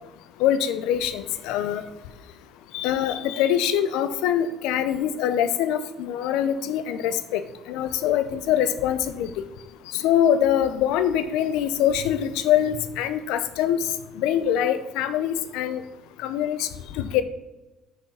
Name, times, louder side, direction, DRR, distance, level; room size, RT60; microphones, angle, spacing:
voice 1, 0.4-1.8 2.7-7.4 7.7-9.3 10.0-13.8 14.2-15.8 16.2-16.7 17.0-17.2, left 10 dB, 80° left, 12 dB, 0.6 m, -23 dB
6.3 x 6.1 x 5.7 m, 1.1 s
supercardioid pair, 90°, 0 cm